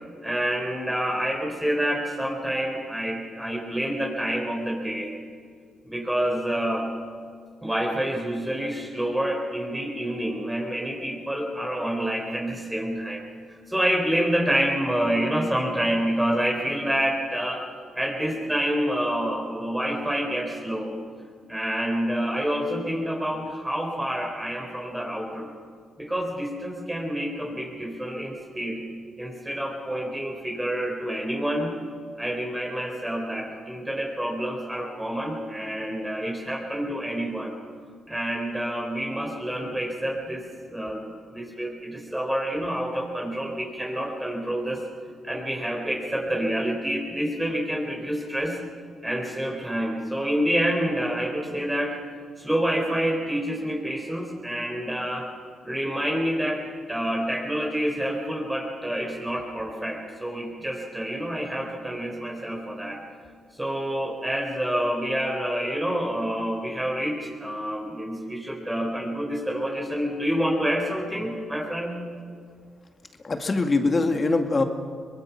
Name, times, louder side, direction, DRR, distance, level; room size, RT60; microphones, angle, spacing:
voice 1, 0.2-5.1 5.8-6.9 7.6-13.2 13.7-17.7 18.0-20.9 21.5-25.5 26.0-28.9 29.2-31.7 32.2-37.5 38.1-44.8 45.2-48.6 49.0-52.0 52.4-55.3 55.6-56.6 56.9-63.0 63.5-72.0, equal, 10° right, 1 dB, 4.0 m, -28 dB
voice 2, 73.2-74.6, left 3 dB, 35° left, 5 dB, 2.3 m, -22 dB
24.0 x 19.5 x 5.9 m, 2.1 s
supercardioid pair, 65°, 0 cm